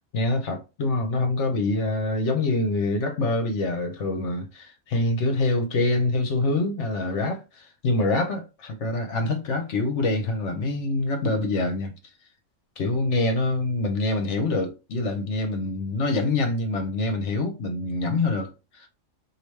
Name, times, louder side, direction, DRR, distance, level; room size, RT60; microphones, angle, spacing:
voice 1, 0.1-11.9 12.8-18.9, left 2 dB, 65° left, 1.1 m, -25 dB
4.8 x 2.6 x 3.2 m
omnidirectional pair, 1.3 m